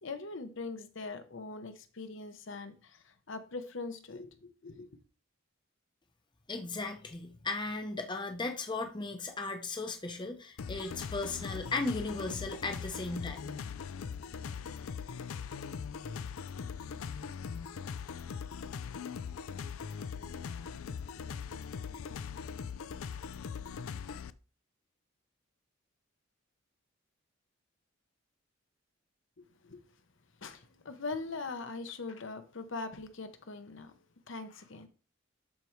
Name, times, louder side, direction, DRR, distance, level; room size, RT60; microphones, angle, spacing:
voice 1, 0.0-4.9 29.4-29.8 30.4-34.0 34.3-34.9, left 3 dB, 60° left, 0.8 m, -42 dB
voice 2, 6.5-13.5, left 3 dB, 20° left, 0.7 m, -36 dB
sound 1, 10.6-24.3, left 6 dB, 80° left, 0.4 m, -40 dB
12.0 x 4.6 x 3.1 m
head